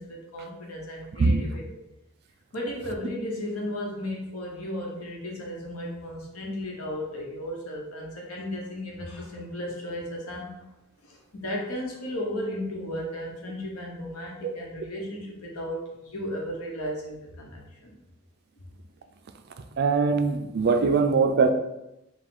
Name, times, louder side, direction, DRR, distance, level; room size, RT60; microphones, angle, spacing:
voice 1, 0.0-1.6 2.5-10.7 11.0-18.0 18.6-18.7, left 1 dB, 90° left, -1 dB, 1.0 m, -35 dB
voice 2, 19.8-21.5, right 4 dB, 50° right, 7 dB, 0.3 m, -21 dB
4.8 x 2.3 x 3.7 m, 0.89 s
head